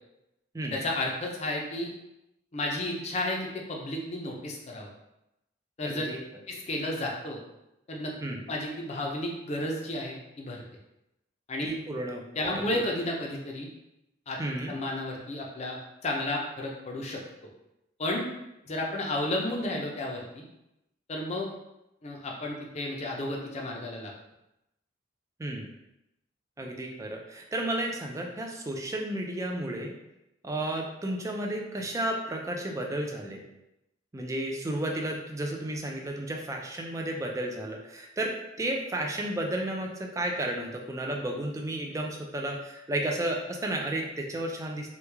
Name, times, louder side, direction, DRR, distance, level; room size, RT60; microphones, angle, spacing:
voice 1, 0.7-1.9 2.5-4.9 5.8-6.1 6.5-7.4 7.9-8.1 8.5-10.6 11.5-11.7 12.3-13.7 14.3-14.4 14.7-17.2 18.0-18.3 18.7-20.4 21.1-21.5 22.0-24.1, left 1 dB, 35° left, -1 dB, 0.5 m, -32 dB
voice 2, 5.8-6.2 8.2-8.4 11.6-12.6 14.4-14.7 25.4-25.7 26.6-29.9 30.4-33.4 34.1-44.9, right 1 dB, 15° right, 1 dB, 0.4 m, -32 dB
3.0 x 2.3 x 3.4 m, 0.89 s
head